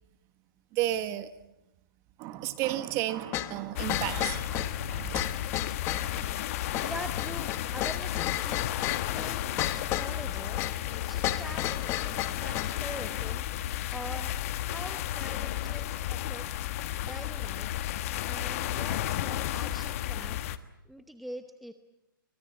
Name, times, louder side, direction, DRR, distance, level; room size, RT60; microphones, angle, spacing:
voice 1, 0.7-1.3 2.2-5.2 6.0-6.5, right 13 dB, 25° right, 11 dB, 1.4 m, -33 dB
sound 1, 3.3-12.8, left 13 dB, 20° left, 1.1 m, -34 dB
sound 2, 3.8-20.6, left 12 dB, 40° left, 1.3 m, -33 dB
voice 2, 6.8-8.7 9.0-10.7 11.0-13.4 13.9-14.3 14.6-16.6 17.0-17.7 18.2-20.4 20.8-21.7, equal, ahead, 7 dB, 0.9 m, -44 dB
27.0 x 24.5 x 7.7 m, 0.90 s
hypercardioid pair, 145°, 12 cm